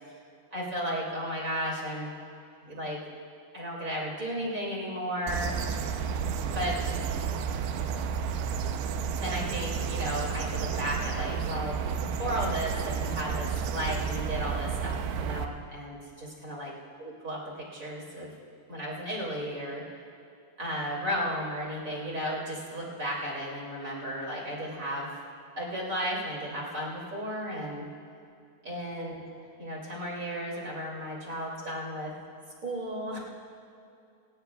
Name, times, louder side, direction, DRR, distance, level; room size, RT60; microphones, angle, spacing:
voice 1, 0.5-2.1 2.6-3.0 3.5-5.6 6.5-6.8 9.2-16.7 17.0-18.3 18.7-19.8 20.6-25.1 25.6-27.9 28.6-29.2 29.6-32.1 32.6-33.2, equal, 25° right, -4 dB, 2.4 m, -34 dB
sound 1, 5.3-15.5, right 6 dB, 80° right, 2.7 m, -31 dB
27.0 x 17.0 x 2.4 m, 2.5 s
omnidirectional pair, 5.0 m